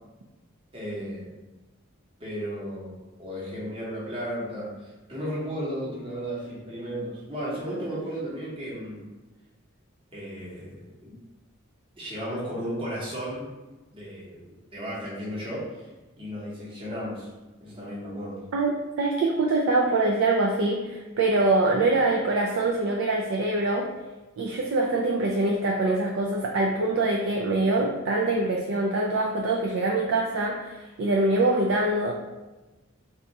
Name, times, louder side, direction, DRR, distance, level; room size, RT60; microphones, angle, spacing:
voice 1, 0.7-1.3 2.2-9.1 10.1-10.7 11.0-11.1 12.0-13.5 13.9-15.9 16.2-17.3 17.6-18.4, equal, 25° right, -7 dB, 0.9 m, -34 dB
voice 2, 19.0-23.9 24.4-32.1, right 2 dB, 65° right, -2 dB, 0.4 m, -24 dB
2.6 x 2.3 x 4.0 m, 1.1 s
head